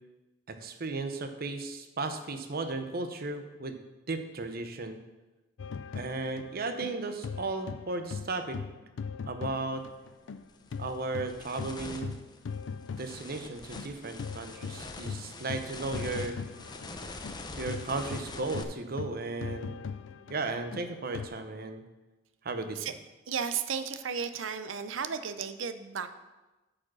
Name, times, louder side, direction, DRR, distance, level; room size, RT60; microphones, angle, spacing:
voice 1, 0.5-3.8 4.1-5.0 6.0-8.6 9.3-9.9 10.8-12.2 13.0-16.4 17.5-19.8 20.3-21.8 22.4-22.8, right 3 dB, 50° right, 7 dB, 0.8 m, -35 dB
sound 1, 5.6-10.4 10.7-21.3, left 5 dB, 70° left, 0.4 m, -40 dB
sound 2, 9.8-9.9 10.4-18.6, left 2 dB, 20° left, 0.6 m, -44 dB
voice 2, 23.3-26.1, right 6 dB, 90° right, 11 dB, 0.6 m, -34 dB
8.6 x 5.0 x 6.2 m, 1.1 s
head